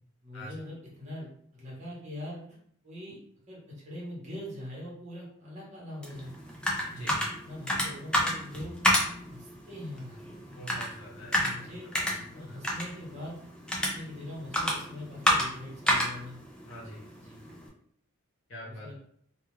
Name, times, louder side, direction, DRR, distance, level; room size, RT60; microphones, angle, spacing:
voice 1, 0.2-2.4 2.8-3.2 3.5-6.3 6.9-7.2 7.4-8.8 9.3-10.6 11.2-11.9 12.2-13.4 13.7-16.4 17.2-17.4 18.7-18.9, left 1 dB, 30° right, -5 dB, 1.0 m, -42 dB
sound 1, 6.0-17.7, equal, 5° left, 0.3 m, -31 dB
voice 2, 10.5-12.6 16.7-17.0 18.5-18.9, equal, 55° left, -4 dB, 0.8 m, -45 dB
2.3 x 2.3 x 3.1 m, 0.64 s
head